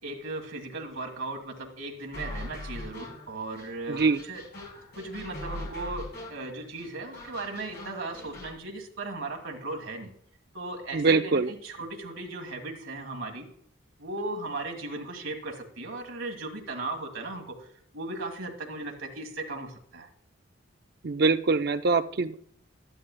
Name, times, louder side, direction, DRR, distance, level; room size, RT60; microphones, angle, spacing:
voice 1, 0.0-4.4 4.9-10.1 10.5-13.5 14.0-17.7 17.9-20.1, right 2 dB, 70° right, 2 dB, 1.8 m, -37 dB
sound 1, 2.1-8.5, left 1 dB, 50° left, 4.4 m, -41 dB
voice 2, 3.9-4.2 10.9-11.5 21.0-22.3, right 4 dB, 50° right, 9 dB, 0.5 m, -23 dB
12.0 x 11.0 x 2.2 m, 0.64 s
head